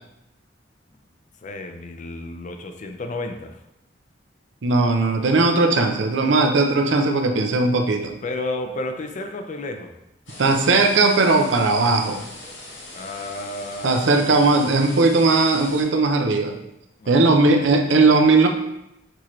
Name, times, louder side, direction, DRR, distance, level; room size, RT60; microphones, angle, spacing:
voice 1, 1.4-3.6 8.2-9.9 12.9-14.2 17.0-18.0, left 2 dB, 40° left, 6 dB, 0.5 m, -32 dB
voice 2, 4.6-8.1 10.4-12.2 13.8-16.6 17.1-18.5, right 3 dB, 80° right, 5 dB, 0.5 m, -18 dB
sound 1, 10.3-15.8, left 2 dB, 85° left, 1.6 m, -40 dB
6.0 x 2.9 x 3.1 m, 0.87 s
head